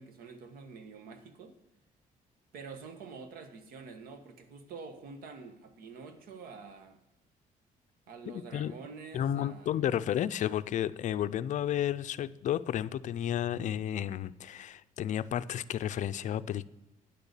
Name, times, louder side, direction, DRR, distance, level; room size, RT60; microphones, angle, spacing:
voice 1, 0.0-1.5 2.5-7.0 8.1-10.0, right 4 dB, 85° right, 1.6 m, -47 dB
voice 2, 8.3-8.7 9.1-16.7, left 10 dB, 55° left, 0.5 m, -32 dB
9.9 x 6.9 x 8.3 m
cardioid pair, 130°, 15 cm